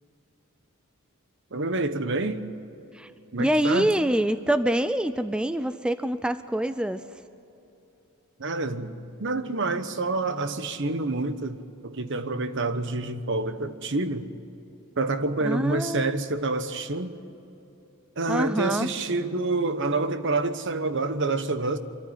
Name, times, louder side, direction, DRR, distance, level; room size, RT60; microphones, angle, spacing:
voice 1, 1.5-2.5 3.3-3.9 8.4-8.9 9.2-14.3 15.0-17.1 18.2-21.8, right 3 dB, 60° right, 1.1 m, -27 dB
voice 2, 3.4-7.0 15.4-16.2 18.3-18.9, right 1 dB, 5° right, 0.4 m, -25 dB
24.5 x 14.0 x 9.5 m
head